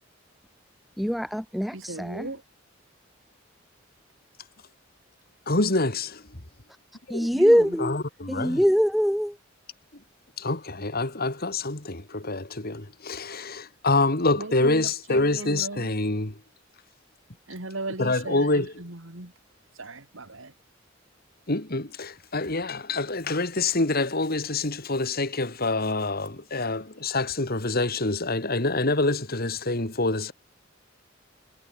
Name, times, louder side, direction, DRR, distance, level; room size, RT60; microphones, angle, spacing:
voice 1, 1.0-2.3 7.1-8.0 8.3-9.4, equal, ahead, 0.7 m, -23 dB
voice 2, 1.7-2.4 7.3-7.8 14.4-15.9 17.5-19.3 19.8-20.5, right 2 dB, 85° right, 3.1 m, -37 dB
voice 3, 5.5-6.4 7.1-7.3 7.8-8.6 10.4-16.3 18.0-18.7 21.5-30.3, left 2 dB, 50° left, 3.3 m, -26 dB
head